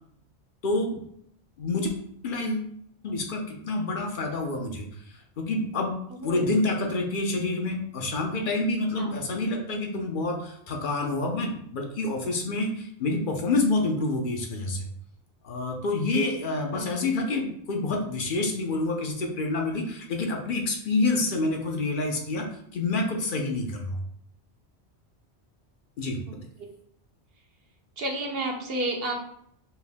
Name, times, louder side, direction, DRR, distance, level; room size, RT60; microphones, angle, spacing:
voice 1, 0.6-1.0 1.6-1.9 2.2-2.7 3.0-6.0 6.2-14.9 15.4-24.0 26.0-26.4, left 2 dB, 55° left, 3 dB, 0.8 m, -28 dB
voice 2, 6.1-6.6 9.0-9.2 16.7-17.0 26.3-26.4 28.0-29.1, right 2 dB, 65° right, 2 dB, 1.0 m, -31 dB
4.5 x 2.6 x 3.4 m, 0.70 s
omnidirectional pair, 1.1 m